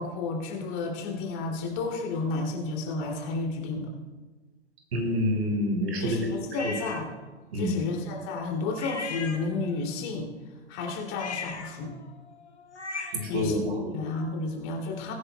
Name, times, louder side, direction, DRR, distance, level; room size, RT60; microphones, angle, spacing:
voice 1, 0.0-3.9 6.0-7.1 7.5-11.9 13.3-15.1, left 3 dB, 35° left, 0 dB, 2.9 m, -32 dB
voice 2, 4.9-6.3 7.5-7.7 13.1-13.9, equal, 65° right, 0 dB, 3.6 m, -27 dB
sound 1, 6.5-7.1 8.8-9.8 11.1-13.4, left 4 dB, 80° left, 1.7 m, -38 dB
22.0 x 9.8 x 2.3 m, 1.3 s
figure-of-eight pair, 105°, 34 cm